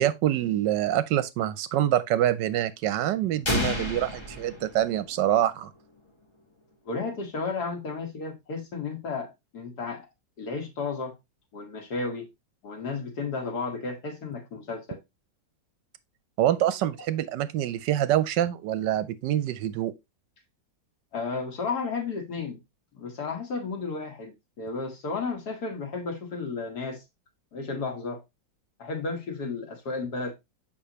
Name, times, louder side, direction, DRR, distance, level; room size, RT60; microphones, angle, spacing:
voice 1, 0.0-5.7 16.4-19.9, right 12 dB, 75° right, 1.2 m, -25 dB
sound 1, 3.4-5.4, left 1 dB, 20° left, 0.9 m, -30 dB
voice 2, 6.9-10.1 10.4-11.2 11.5-12.3 12.6-15.0 21.1-22.6 22.9-27.0 27.5-28.2 28.8-30.3, left 4 dB, 60° left, 1.9 m, -33 dB
6.7 x 5.5 x 2.9 m
omnidirectional pair, 2.0 m